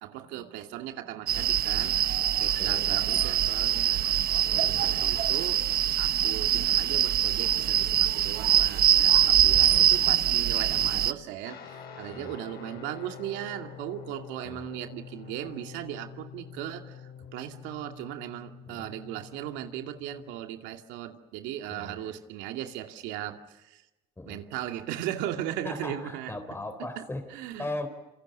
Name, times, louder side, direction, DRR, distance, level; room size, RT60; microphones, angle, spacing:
voice 1, 0.0-2.0 2.4-4.1 4.4-5.6 6.0-23.8 24.3-26.3 27.0-27.1 27.3-27.7, right 12 dB, 85° right, 5 dB, 2.5 m, -37 dB
sound 1, 1.3-11.1, right 11 dB, 55° right, 1.3 m, -24 dB
voice 2, 4.5-5.1 9.5-9.9 12.1-12.3 14.4-14.6 18.7-18.9 21.7-22.0 24.2-24.4 25.6-27.3 27.6-27.9, left 2 dB, 15° left, 8 dB, 4.2 m, -39 dB
Guitar, 11.5-20.4, left 7 dB, 65° left, 7.0 m, -46 dB
27.5 x 27.0 x 6.7 m, 1.0 s
cardioid pair, 100°, 18 cm